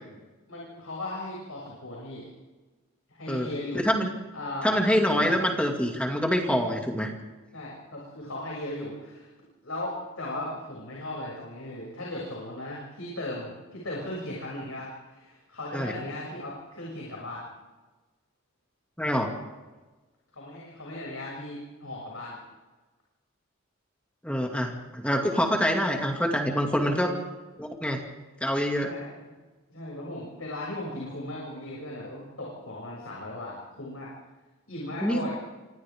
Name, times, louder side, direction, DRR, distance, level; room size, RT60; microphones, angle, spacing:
voice 1, 0.5-2.3 3.1-3.8 4.3-4.9 5.2-5.4 7.5-9.3 9.6-17.4 20.3-22.4 26.8-27.2 28.8-29.3 29.7-34.1 34.7-35.3, left 1 dB, 90° left, -4 dB, 7.2 m, -37 dB
voice 2, 3.7-4.1 4.6-7.1 15.7-15.9 19.0-19.3 24.2-27.1 27.6-28.0 28.4-28.9 35.0-35.3, equal, 5° left, 1 dB, 2.3 m, -25 dB
27.5 x 26.0 x 3.7 m, 1.2 s
head